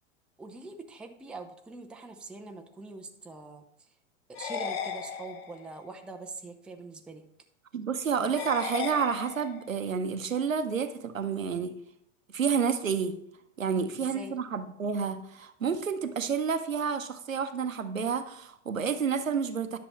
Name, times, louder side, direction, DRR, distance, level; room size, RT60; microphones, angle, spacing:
voice 1, 0.4-3.6 4.3-7.2 13.7-14.4, right 3 dB, 5° right, 4 dB, 0.4 m, -43 dB
sound 1, 4.3-5.8 8.4-9.8, left 7 dB, 50° left, 1.0 m, -36 dB
voice 2, 7.7-11.7 12.3-13.1 13.6-19.8, right 6 dB, 80° right, 10 dB, 0.8 m, -29 dB
10.5 x 6.8 x 3.0 m, 0.76 s
figure-of-eight pair, 85°, 39 cm